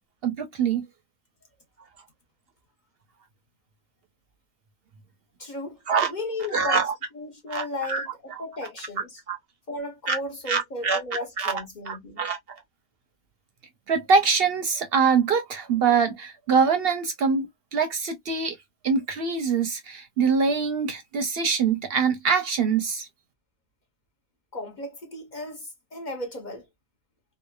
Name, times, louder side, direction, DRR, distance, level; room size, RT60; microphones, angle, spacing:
voice 1, 0.2-0.8 5.9-6.1 6.5-6.9 7.5-8.0 8.3-8.4 9.3-9.4 10.1-10.2 10.5-11.0 11.4-11.6 11.9-12.4 13.9-17.5 17.7-18.6 18.8-23.1, right 5 dB, 60° right, 0.7 m, -24 dB
voice 2, 5.4-5.8 6.1-6.8 7.1-8.1 8.4-9.2 9.7-12.2 24.5-26.7, left 2 dB, 45° left, 0.8 m, -35 dB
3.1 x 2.0 x 2.2 m
omnidirectional pair, 1.3 m